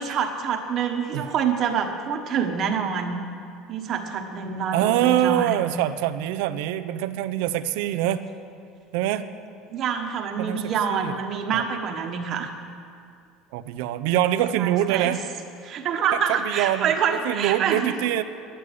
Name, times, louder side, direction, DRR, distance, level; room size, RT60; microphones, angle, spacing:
voice 1, 0.0-3.2 3.7-5.7 9.7-12.5 14.6-15.1 15.6-18.0, right 7 dB, 40° right, 3 dB, 1.3 m, -26 dB
voice 2, 4.7-8.2 8.9-9.2 10.4-11.2 11.5-11.6 13.5-15.2 16.3-18.2, right 12 dB, 75° right, 12 dB, 0.6 m, -24 dB
11.0 x 10.0 x 9.4 m, 2.4 s
cardioid pair, 150°, 0 cm